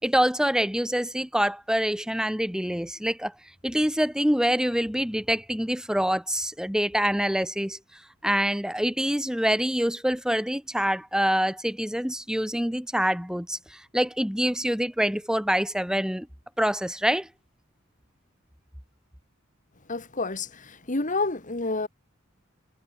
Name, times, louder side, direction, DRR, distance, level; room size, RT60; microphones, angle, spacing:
voice 1, 0.0-3.3 3.6-7.8 8.2-16.3 16.6-17.3, equal, 5° right, 3.0 m, -25 dB
voice 2, 19.9-21.9, left 3 dB, 40° left, 2.2 m, -29 dB
head